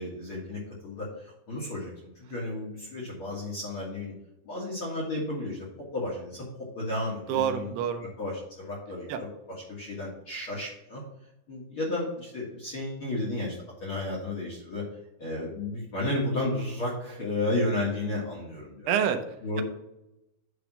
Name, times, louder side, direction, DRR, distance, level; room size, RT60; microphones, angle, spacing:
voice 1, 0.0-4.1 4.4-7.7 8.2-11.0 11.5-13.5 13.8-14.8 15.2-19.0 19.4-19.6, left 2 dB, 45° left, -5 dB, 1.9 m, -33 dB
voice 2, 7.3-8.1 9.1-9.2 18.9-19.2, right 8 dB, 85° right, 7 dB, 2.8 m, -27 dB
9.5 x 3.5 x 6.0 m, 0.86 s
omnidirectional pair, 4.6 m